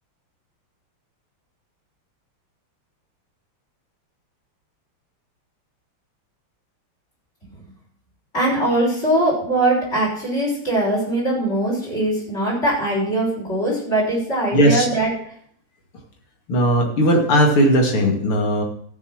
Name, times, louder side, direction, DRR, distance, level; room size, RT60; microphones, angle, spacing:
voice 1, 8.3-15.1, right 1 dB, 30° left, -3 dB, 6.5 m, -21 dB
voice 2, 14.5-14.9 16.5-18.6, equal, 75° left, 1 dB, 3.3 m, -17 dB
14.5 x 6.9 x 6.4 m, 0.62 s
omnidirectional pair, 2.4 m